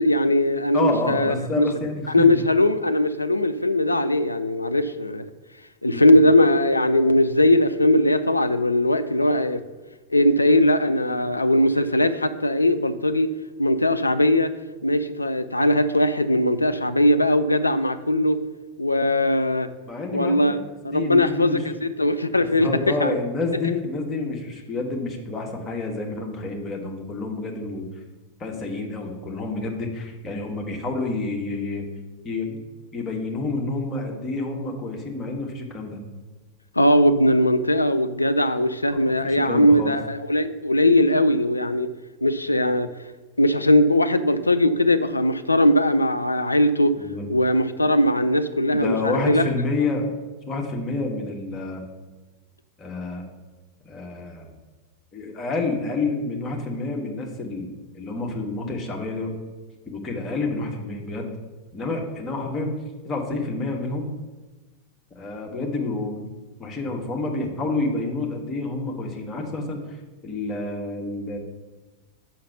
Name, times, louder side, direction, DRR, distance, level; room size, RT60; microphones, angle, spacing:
voice 1, 0.0-1.7 2.1-5.3 5.8-9.6 10.1-13.3 13.6-14.5 14.8-18.4 18.8-19.7 20.1-20.6 20.8-23.1 36.8-41.9 42.2-42.9 43.4-47.0 47.3-49.4, left 1 dB, 80° left, 11 dB, 0.4 m, -20 dB
voice 2, 0.7-2.3 5.9-6.1 19.9-20.6 20.9-21.6 22.4-27.9 28.4-31.9 32.2-32.6 32.9-36.0 39.2-39.9 47.0-47.3 48.7-50.1 50.5-51.8 52.8-53.2 53.8-54.5 55.1-59.3 59.9-61.3 61.7-62.8 63.0-64.1 65.1-66.3 66.6-69.8 70.2-71.4, left 3 dB, 20° left, 0 dB, 1.6 m, -28 dB
5.8 x 5.7 x 6.8 m, 1.2 s
figure-of-eight pair, 90°, 0 cm